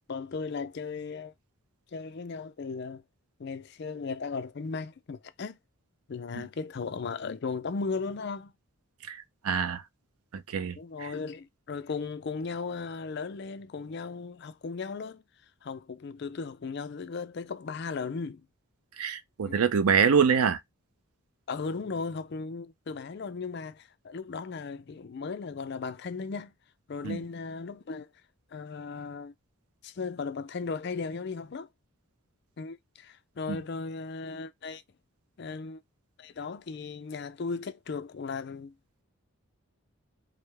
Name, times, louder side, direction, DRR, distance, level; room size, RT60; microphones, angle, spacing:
voice 1, 0.1-1.3 1.9-3.0 3.4-5.6 6.1-8.5 10.8-15.2 15.6-18.5 19.4-19.6 21.5-26.5 26.9-28.1 28.5-29.3 29.8-31.7 32.6-34.8 35.4-35.8 36.2-38.7, left 4 dB, 50° left, 0.4 m, -36 dB
voice 2, 9.1-9.8 10.3-11.1 19.0-20.6 27.0-27.2 33.5-33.6, right 6 dB, 85° right, 0.5 m, -26 dB
4.8 x 2.1 x 3.3 m
head